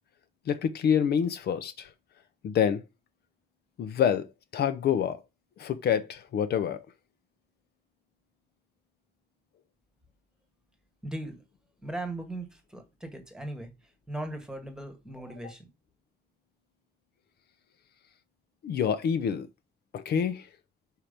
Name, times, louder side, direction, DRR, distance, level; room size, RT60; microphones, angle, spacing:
voice 1, 0.5-1.9 2.4-2.8 3.8-4.3 4.5-5.2 5.6-6.8 18.6-19.5 19.9-20.5, left 8 dB, 70° left, 0.7 m, -27 dB
voice 2, 11.0-11.4 11.8-13.7 14.1-15.7, right 1 dB, 5° right, 1.2 m, -38 dB
5.7 x 4.5 x 5.0 m
wide cardioid pair, 180°, 17 cm